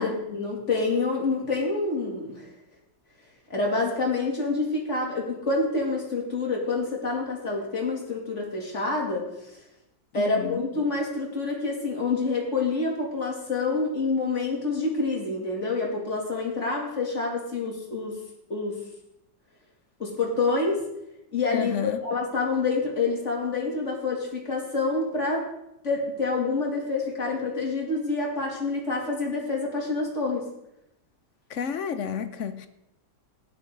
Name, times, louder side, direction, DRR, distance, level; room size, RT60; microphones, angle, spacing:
voice 1, 0.0-2.5 3.5-9.6 10.1-18.2 18.5-18.8 20.0-20.8 21.3-25.4 25.8-30.4, left 3 dB, 40° left, -2 dB, 3.1 m, -27 dB
voice 2, 10.1-10.6 21.5-22.0 31.5-32.7, left 7 dB, 60° left, 10 dB, 0.8 m, -31 dB
15.5 x 11.0 x 3.9 m, 0.82 s
omnidirectional pair, 1.9 m